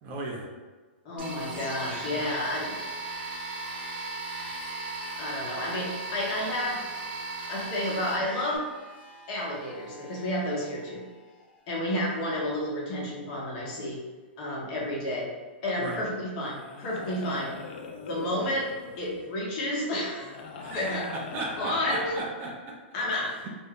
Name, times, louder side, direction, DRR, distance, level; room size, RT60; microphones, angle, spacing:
voice 1, 0.0-0.5 2.1-2.3 15.8-16.0 20.6-22.8 23.2-23.5, right 2 dB, 30° right, -2 dB, 0.6 m, -36 dB
voice 2, 1.0-2.8 5.2-6.8 7.5-8.6 9.3-11.0 11.7-14.0 14.4-15.3 15.6-17.5 18.0-18.7 19.0-20.4 20.7-21.1 21.6-22.2 22.9-23.3, left 1 dB, 45° left, -4 dB, 1.0 m, -31 dB
sound 1, 1.2-8.6, right 3 dB, 60° right, 1.0 m, -37 dB
sound 2, 1.4-11.8 12.6-12.7, equal, 75° left, 1.0 m, -48 dB
sound 3, 15.7-16.0 16.4-19.3 20.2-22.2, left 4 dB, 60° left, 0.4 m, -42 dB
2.6 x 2.2 x 3.6 m, 1.3 s
hypercardioid pair, 140°, 6 cm